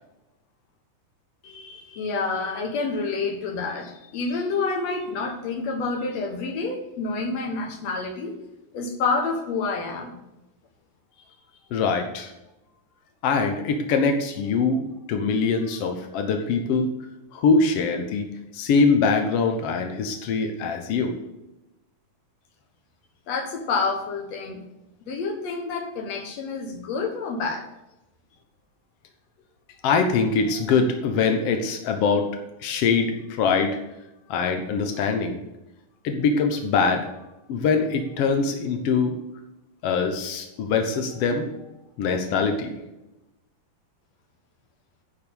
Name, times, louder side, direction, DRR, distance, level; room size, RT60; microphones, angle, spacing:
voice 1, 1.4-8.4 8.7-10.2 23.3-24.6 25.1-27.7, left 4 dB, 55° left, 4 dB, 2.2 m, -28 dB
voice 2, 11.7-12.3 13.2-14.8 15.1-16.9 17.3-18.3 18.5-21.2 29.8-32.3 32.6-33.8 34.3-35.4 36.0-37.1 37.5-39.1 39.8-41.5 42.0-42.7, left 4 dB, 80° left, 4 dB, 1.3 m, -23 dB
10.5 x 5.4 x 7.0 m, 0.95 s
omnidirectional pair, 4.2 m